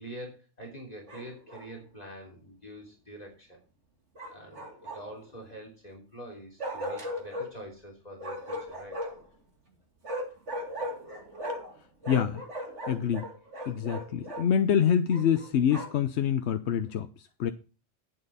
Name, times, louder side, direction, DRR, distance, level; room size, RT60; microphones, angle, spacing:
voice 1, 0.0-3.6 4.3-9.0 17.4-17.5, right 1 dB, 35° left, 3.4 m, -45 dB
Bark, 1.1-1.7 4.2-5.3 6.6-7.5 8.2-9.3 10.0-11.8 12.0-14.5 15.1-16.1, equal, 90° right, 3.4 m, -37 dB
voice 2, 12.1-12.4 12.9-13.3 13.7-17.5, left 8 dB, 75° left, 1.0 m, -26 dB
10.5 x 8.9 x 4.1 m
omnidirectional pair, 1.2 m